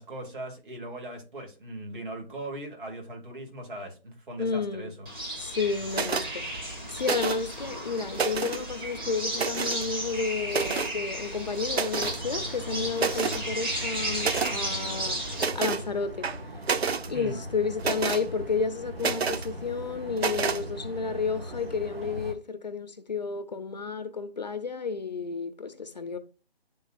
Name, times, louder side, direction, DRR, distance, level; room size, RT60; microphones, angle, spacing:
voice 1, 0.0-5.1 17.1-17.4, right 1 dB, 55° right, 2.5 m, -39 dB
voice 2, 4.4-4.9 5.4-15.2 15.5-16.3 17.1-26.2, left 5 dB, 45° left, 0.5 m, -31 dB
sound 1, 5.1-15.5, right 1 dB, 20° right, 1.3 m, -34 dB
sound 2, 5.9-6.3 7.0-7.5 8.0-8.6 9.3-9.8 10.5-10.9 11.7-12.2 12.6-12.7 13.0-13.4 14.2-14.6 15.4-15.8 16.2-17.1 17.8-18.2 19.0-19.5 20.2-20.6, right 5 dB, 90° right, 0.7 m, -29 dB
sound 3, 11.9-22.3, equal, 70° right, 1.7 m, -40 dB
11.0 x 3.8 x 2.5 m
hypercardioid pair, 165°, 31 cm